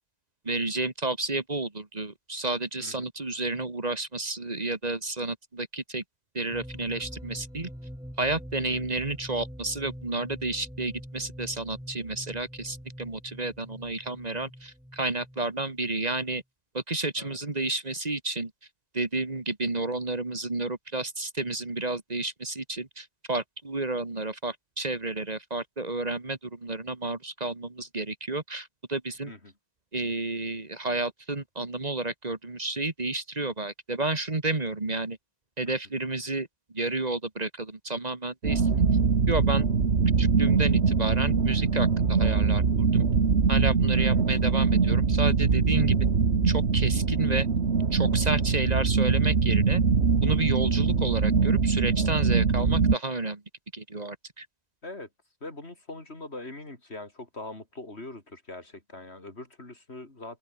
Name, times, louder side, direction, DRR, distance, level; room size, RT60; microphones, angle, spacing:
voice 1, 0.5-6.0 6.3-7.7 8.2-16.4 16.7-18.5 18.9-29.3 29.9-35.2 35.6-36.5 36.7-38.8 39.3-39.7 40.2-43.0 43.5-46.0 46.4-47.5 47.9-49.8 50.2-53.4 53.7-54.5, right 2 dB, 40° right, 2.0 m, -31 dB
sound 1, 6.5-16.2, equal, 5° right, 7.7 m, -44 dB
sound 2, 38.4-53.0, right 5 dB, 80° right, 2.0 m, -23 dB
voice 2, 55.4-60.4, left 2 dB, 75° left, 4.5 m, -42 dB
omnidirectional pair, 1.1 m